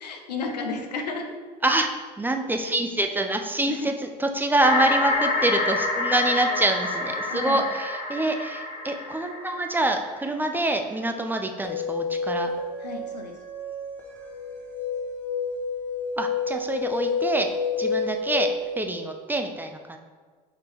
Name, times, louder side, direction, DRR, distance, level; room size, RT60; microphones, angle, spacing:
voice 1, 0.0-1.3 3.7-3.9 7.3-7.6 12.8-13.3, left 4 dB, 85° left, 4 dB, 0.6 m, -32 dB
voice 2, 1.6-12.5 16.2-17.5 17.8-20.0, right 1 dB, 10° right, 5 dB, 0.4 m, -26 dB
sound 1, 4.6-10.3, left 2 dB, 40° left, 0.8 m, -28 dB
sound 2, 11.6-18.8, left 4 dB, 10° left, 1.0 m, -29 dB
5.1 x 2.8 x 3.4 m, 1.5 s
hypercardioid pair, 75°, 21 cm